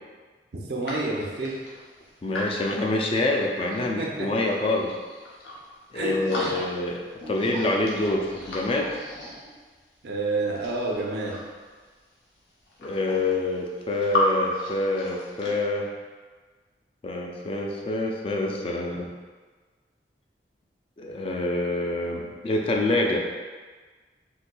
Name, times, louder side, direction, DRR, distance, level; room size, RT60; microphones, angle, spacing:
voice 1, 0.7-1.6 4.0-4.3 5.9-6.1 6.4-6.5 10.0-11.3, right 2 dB, 70° right, -2 dB, 0.6 m, -28 dB
sound 1, 0.8-3.8 4.2-5.7 6.0-6.9 7.2-9.8 10.4-11.6 12.4-12.5 12.7-14.2 14.5-15.5, left 1 dB, 85° left, 0.7 m, -35 dB
voice 2, 2.2-5.0 5.9-7.0 7.3-8.9 12.8-15.9 17.0-19.1 21.0-23.2, left 2 dB, 30° left, 0 dB, 0.3 m, -26 dB
4.0 x 2.6 x 2.2 m, 1.4 s
head